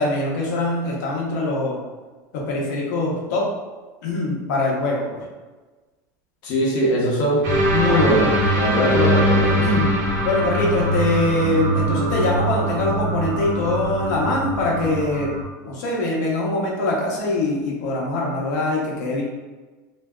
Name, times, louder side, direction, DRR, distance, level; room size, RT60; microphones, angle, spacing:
voice 1, 0.0-1.8 2.3-3.5 4.0-5.2 9.5-9.9 10.2-15.3 15.6-19.2, left 2 dB, 80° left, -3 dB, 0.7 m, -23 dB
voice 2, 6.4-9.7, equal, 45° left, -3 dB, 0.8 m, -21 dB
sound 1, 7.4-15.4, right 1 dB, 85° right, 0.8 m, -22 dB
2.6 x 2.2 x 2.3 m, 1.3 s
supercardioid pair, 145°, 9 cm